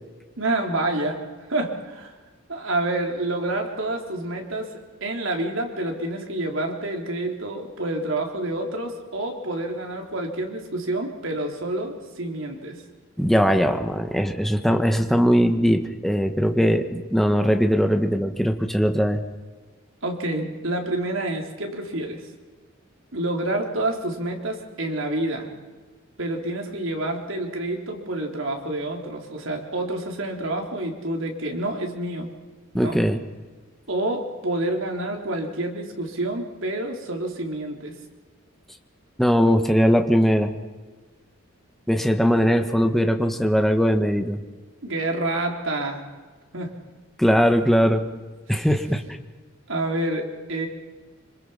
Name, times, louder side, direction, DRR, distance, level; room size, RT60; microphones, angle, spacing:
voice 1, 0.4-1.2 1.5-2.1 2.5-12.8 20.0-22.2 23.1-25.5 26.2-32.3 32.7-33.0 33.9-37.9 44.8-46.0 46.5-46.7 49.7-50.7, right 2 dB, 65° right, 2 dB, 4.0 m, -28 dB
voice 2, 13.2-19.2 32.7-33.2 39.2-40.5 41.9-44.4 47.2-48.0 48.5-49.2, equal, ahead, 5 dB, 1.6 m, -20 dB
26.5 x 26.0 x 5.8 m, 1.4 s
head